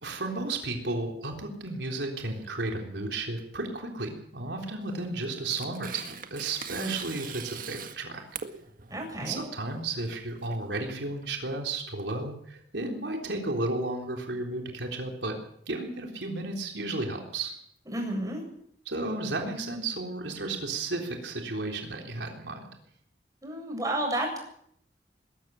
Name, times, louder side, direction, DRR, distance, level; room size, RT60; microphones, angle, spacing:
voice 1, 0.0-8.3 9.2-15.3 15.7-17.6 18.9-22.6, right 2 dB, 85° right, 2 dB, 3.7 m, -33 dB
Tearing, 4.8-11.6, right 7 dB, 50° right, 1.8 m, -42 dB
voice 2, 8.9-9.4 17.9-18.4 23.4-24.4, right 1 dB, 20° right, 1 dB, 7.6 m, -31 dB
21.0 x 13.5 x 9.0 m, 0.69 s
head